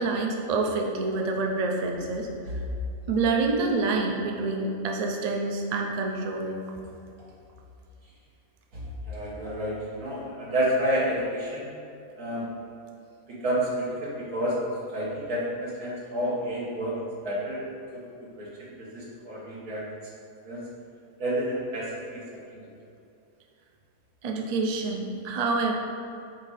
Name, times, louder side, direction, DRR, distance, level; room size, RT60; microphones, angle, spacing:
voice 1, 0.0-2.3 3.1-6.5 24.2-25.7, right 3 dB, 65° right, 1 dB, 0.4 m, -27 dB
voice 2, 8.7-11.7 12.2-12.5 13.3-14.7 14.9-17.6 17.9-18.0 18.4-19.9 20.5-20.6 21.2-22.2 22.5-22.7, equal, 85° right, -6 dB, 2.0 m, -30 dB
5.0 x 4.1 x 4.8 m, 2.6 s
omnidirectional pair, 1.6 m